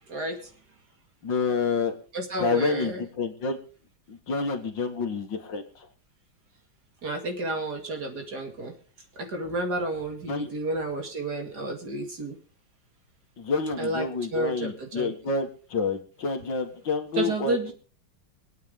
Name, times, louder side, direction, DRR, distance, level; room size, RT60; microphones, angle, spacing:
voice 1, 0.1-0.5 2.1-3.0 7.0-8.8 9.2-12.4 13.8-15.1 17.1-17.7, right 2 dB, 50° right, 3 dB, 2.8 m, -31 dB
voice 2, 1.2-1.9 2.4-3.6 4.1-5.9 10.3-10.5 13.4-17.7, left 4 dB, 60° left, 4 dB, 2.3 m, -28 dB
24.5 x 9.4 x 3.7 m, 0.39 s
omnidirectional pair, 2.3 m